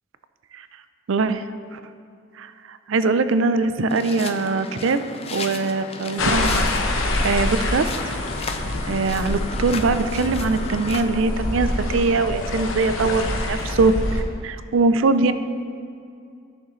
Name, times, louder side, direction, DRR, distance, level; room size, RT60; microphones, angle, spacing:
voice 1, 1.1-1.4 1.7-1.8 2.4-5.0 5.3-6.7 7.2-7.9 8.9-15.3, right 3 dB, 70° right, 11 dB, 0.4 m, -22 dB
sound 1, 3.9-11.0, left 4 dB, 30° left, 0.4 m, -35 dB
sound 2, 6.2-14.2, left 2 dB, 80° left, 0.9 m, -26 dB
13.5 x 6.5 x 3.1 m, 2.4 s
head